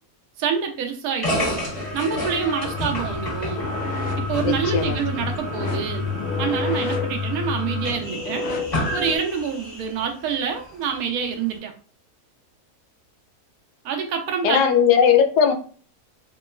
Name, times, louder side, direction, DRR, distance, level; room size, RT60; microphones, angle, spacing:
voice 1, 0.4-1.7 1.9-3.7 4.2-6.1 6.4-8.4 8.9-11.7 13.8-14.6, right 7 dB, 70° right, 4 dB, 1.0 m, -26 dB
sound 1, 1.2-10.0, left 3 dB, 30° left, 1.1 m, -28 dB
sound 2, 3.6-9.2, left 3 dB, 60° left, 0.6 m, -32 dB
voice 2, 4.4-5.0 14.4-15.5, left 7 dB, 85° left, 5 dB, 1.2 m, -18 dB
3.0 x 3.0 x 2.3 m, 0.43 s
omnidirectional pair, 1.7 m